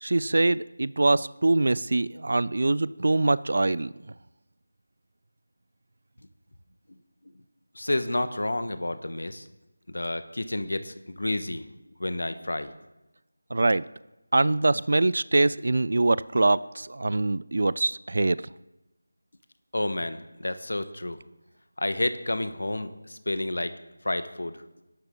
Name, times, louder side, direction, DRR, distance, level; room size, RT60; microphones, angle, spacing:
voice 1, 0.0-3.9 13.5-13.8 14.3-18.4, right 2 dB, 55° right, 20 dB, 0.4 m, -23 dB
voice 2, 7.8-9.5 9.9-11.6 12.0-12.7 19.7-21.2 21.8-23.8 24.0-24.6, left 1 dB, 65° left, 10 dB, 1.3 m, -30 dB
20.5 x 11.5 x 3.9 m, 1.0 s
figure-of-eight pair, 165°, 0 cm